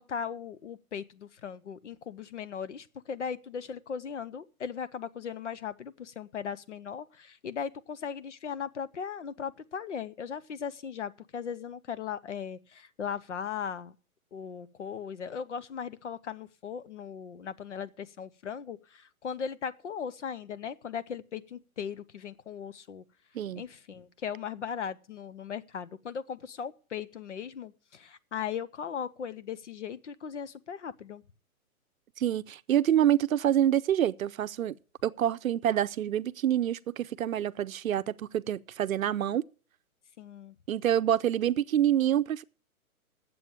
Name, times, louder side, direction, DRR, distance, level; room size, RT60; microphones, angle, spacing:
voice 1, 0.0-13.9 14.3-23.0 23.5-31.2 40.2-40.5, left 7 dB, 55° left, 0.7 m, -38 dB
voice 2, 32.2-34.7 35.0-39.4 40.7-42.4, right 11 dB, 70° right, 0.7 m, -27 dB
8.9 x 7.7 x 9.1 m
hypercardioid pair, 180°, 43 cm